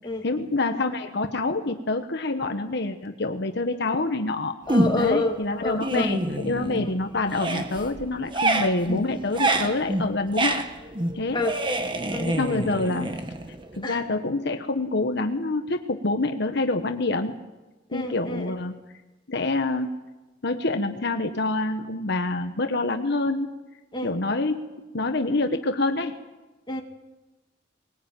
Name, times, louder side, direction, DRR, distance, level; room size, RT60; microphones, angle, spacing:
voice 1, 0.2-4.5 4.9-10.6 11.1-11.4 12.2-13.1 13.8-17.4 17.9-18.8 19.3-19.9 20.4-23.5 24.0-24.6 24.9-26.2, left 2 dB, 65° left, 6 dB, 1.3 m, -26 dB
voice 2, 4.7-5.3 5.6-6.1 8.5-8.6 11.3-11.5 12.1-12.6 13.8-14.0 17.9-18.5 23.9-24.1 26.7-26.8, left 2 dB, 25° left, 2 dB, 2.4 m, -28 dB
sound 1, 4.7-5.2 5.6-7.0 7.3-13.8, right 1 dB, 25° right, 1.6 m, -27 dB
21.5 x 19.5 x 9.0 m, 1.1 s
head